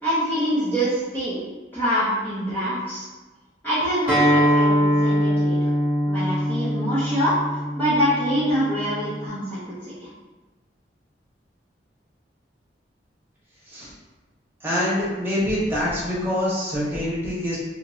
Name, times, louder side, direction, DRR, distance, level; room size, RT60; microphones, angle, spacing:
voice 1, 0.0-1.4 1.7-3.1 3.6-5.7 6.1-7.4 7.8-10.1, equal, 10° left, -12 dB, 0.6 m, -25 dB
Acoustic guitar, 4.1-9.3, equal, 55° left, 1.2 m, -22 dB
voice 2, 14.6-17.6, left 1 dB, 10° right, -8 dB, 1.0 m, -25 dB
2.9 x 2.7 x 2.7 m, 1.2 s
head